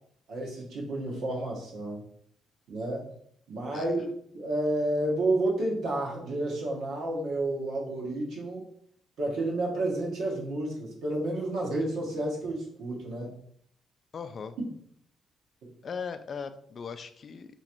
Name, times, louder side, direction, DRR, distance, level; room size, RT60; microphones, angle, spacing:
voice 1, 0.3-2.0 2.7-3.1 3.5-4.1 4.3-8.6 9.2-13.3 14.6-14.7, right 1 dB, 75° right, -2 dB, 1.1 m, -30 dB
voice 2, 14.1-14.5 15.8-17.6, left 6 dB, 50° left, 10 dB, 0.3 m, -38 dB
3.0 x 2.5 x 4.3 m, 0.67 s
cardioid pair, 90°, 0 cm